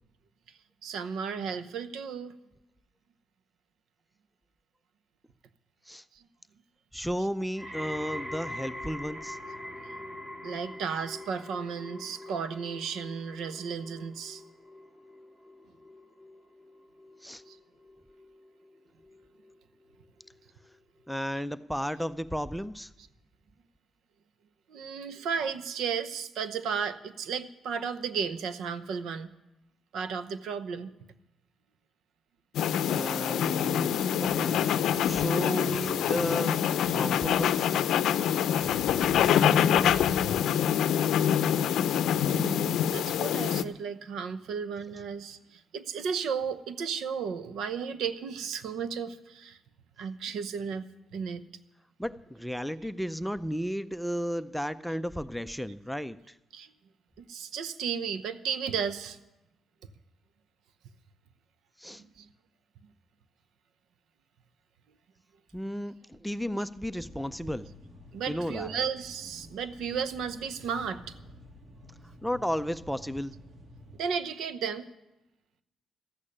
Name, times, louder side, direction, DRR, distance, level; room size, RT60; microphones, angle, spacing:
voice 1, 0.8-2.3 6.1-6.2 7.2-7.3 10.4-14.4 17.5-17.6 23.0-23.1 24.7-29.3 29.9-30.9 42.1-49.6 50.0-50.8 51.1-51.4 56.5-56.7 57.2-59.2 61.9-62.3 68.1-71.1 73.9-74.9, right 6 dB, 80° right, 11 dB, 0.9 m, -34 dB
voice 2, 6.9-9.4 17.2-17.4 21.1-22.9 32.9-37.7 52.0-56.3 61.8-62.0 65.5-67.7 68.3-68.7 72.2-73.3, equal, ahead, 12 dB, 0.5 m, -33 dB
sound 1, 7.6-18.7 19.0-19.5 20.2-20.3, left 1 dB, 15° right, 1.9 m, -43 dB
sound 2, 32.5-43.6, left 9 dB, 80° left, 0.6 m, -25 dB
sound 3, 67.1-74.0, equal, 50° right, 2.4 m, -51 dB
14.0 x 8.5 x 10.0 m, 0.95 s
cardioid pair, 90°, 0 cm